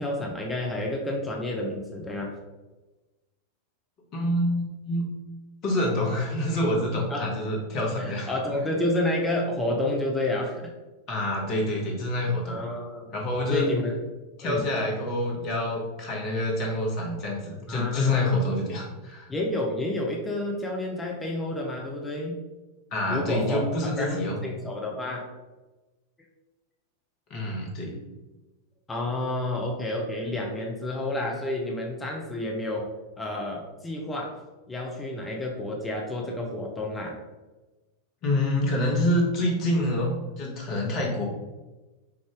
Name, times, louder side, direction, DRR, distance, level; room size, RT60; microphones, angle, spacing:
voice 1, 0.0-2.3 7.1-7.3 8.0-10.7 12.5-13.1 13.5-14.0 14.4-14.7 17.7-18.4 19.3-22.4 23.1-23.7 24.0-25.3 28.9-32.9 33.2-34.4 34.7-37.2, left 1 dB, 15° left, 0 dB, 0.6 m, -30 dB
voice 2, 4.1-5.1 5.6-8.3 11.1-12.5 13.1-13.7 14.4-19.3 22.9-24.4 27.3-28.0 38.2-41.2, left 1 dB, 40° left, -2 dB, 1.2 m, -27 dB
4.8 x 2.6 x 3.5 m, 1.2 s
figure-of-eight pair, 90°, 0 cm